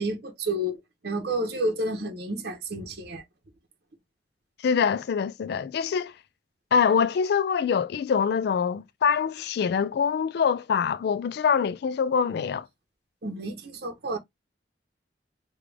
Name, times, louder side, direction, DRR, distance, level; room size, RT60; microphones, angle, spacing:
voice 1, 0.0-3.2 13.2-14.2, right 1 dB, 60° right, 1.0 m, -30 dB
voice 2, 4.6-6.1 6.7-12.7, left 6 dB, 65° left, 0.3 m, -24 dB
3.3 x 2.4 x 3.3 m
head